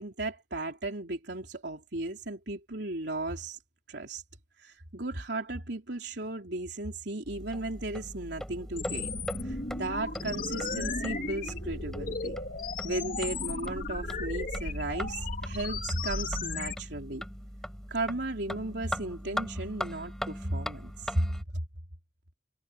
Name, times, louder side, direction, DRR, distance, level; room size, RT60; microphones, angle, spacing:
voice 1, 0.0-3.6 3.9-4.2 4.6-9.2 9.4-12.4 12.8-17.2 17.9-21.3, right 2 dB, 65° right, 3.8 m, -35 dB
sound 1, 7.2-21.4, equal, 5° left, 7.9 m, -40 dB
sound 2, 8.8-16.7, left 3 dB, 50° left, 2.6 m, -35 dB
head